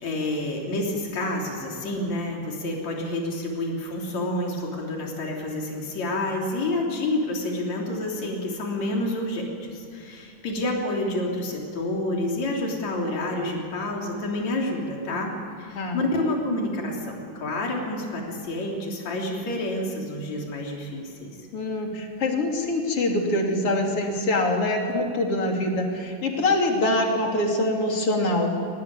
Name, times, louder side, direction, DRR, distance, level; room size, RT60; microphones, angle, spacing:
voice 1, 0.0-15.3 15.6-21.4, left 1 dB, 65° left, -1 dB, 4.6 m, -29 dB
voice 2, 21.5-28.5, left 1 dB, 50° left, 1 dB, 3.9 m, -24 dB
23.5 x 19.5 x 9.7 m, 2.4 s
omnidirectional pair, 3.4 m